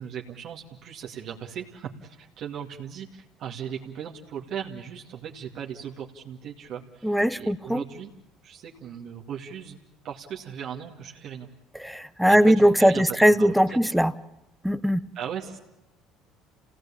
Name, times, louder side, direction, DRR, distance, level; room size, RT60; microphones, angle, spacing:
voice 1, 0.0-8.1 8.4-9.8 10.0-11.5 12.2-13.8 15.1-15.6, right 8 dB, 60° right, 0 dB, 2.4 m, -38 dB
voice 2, 7.0-7.8 11.8-14.1 14.6-15.0, equal, ahead, 15 dB, 1.0 m, -20 dB
28.0 x 18.0 x 8.8 m, 0.92 s
hypercardioid pair, 75°, 0 cm